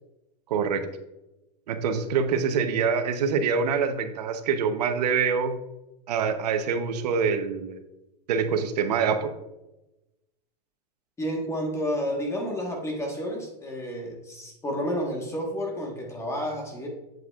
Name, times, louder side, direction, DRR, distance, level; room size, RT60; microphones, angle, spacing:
voice 1, 0.5-0.9 1.7-5.5 6.1-7.8 8.3-9.3, right 6 dB, 80° right, 8 dB, 0.9 m, -25 dB
voice 2, 11.2-16.9, equal, 15° left, 1 dB, 1.4 m, -30 dB
8.0 x 7.8 x 2.4 m, 0.96 s
supercardioid pair, 135°, 21 cm